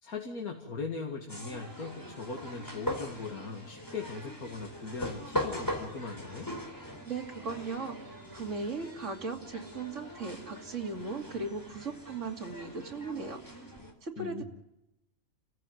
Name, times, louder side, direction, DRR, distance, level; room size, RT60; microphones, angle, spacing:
voice 1, 0.0-6.5 14.2-14.4, left 4 dB, 90° left, 2 dB, 2.5 m, -39 dB
sound 1, 1.3-13.9, left 1 dB, 15° left, 4.1 m, -40 dB
voice 2, 7.0-13.4 14.0-14.4, right 3 dB, 55° right, 2 dB, 2.9 m, -37 dB
30.0 x 15.0 x 9.3 m, 0.89 s
omnidirectional pair, 1.5 m